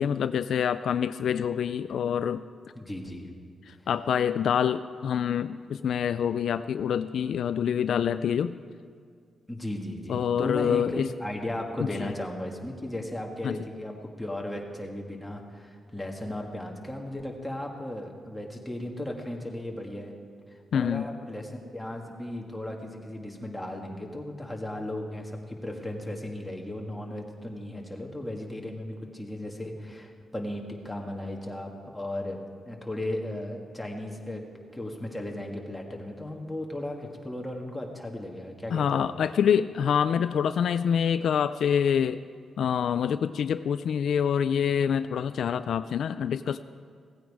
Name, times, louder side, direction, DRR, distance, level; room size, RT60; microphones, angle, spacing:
voice 1, 0.0-2.4 3.7-8.5 10.1-11.1 11.8-12.1 13.4-13.6 20.7-21.1 38.7-42.2 42.6-46.6, left 8 dB, 65° left, 12 dB, 0.3 m, -26 dB
voice 2, 2.7-3.3 9.5-20.1 20.7-32.4 32.6-34.4 34.7-39.1, left 1 dB, 5° left, 0 dB, 1.7 m, -36 dB
17.0 x 15.5 x 4.8 m, 2.1 s
wide cardioid pair, 160°, 0 cm